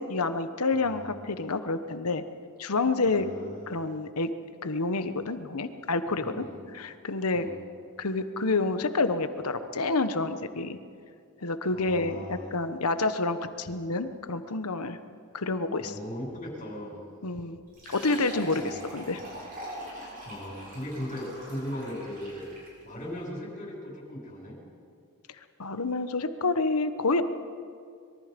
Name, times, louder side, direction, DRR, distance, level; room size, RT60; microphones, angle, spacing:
voice 1, 0.0-2.2 2.6-3.3 3.7-4.3 4.6-6.4 6.7-7.5 8.0-10.8 11.4-15.0 15.3-15.9 17.2-17.6 17.9-19.2 25.6-27.2, left 3 dB, 80° left, 10 dB, 1.2 m, -28 dB
voice 2, 0.7-1.1 3.1-3.7 6.2-6.6 7.3-7.6 11.7-12.5 15.8-17.0 18.6-18.9 20.2-22.5 22.8-24.6, equal, 35° left, -2 dB, 6.5 m, -38 dB
Fill (with liquid), 17.7-22.8, right 1 dB, 40° right, 7.3 m, -43 dB
25.5 x 22.5 x 5.3 m, 2.3 s
head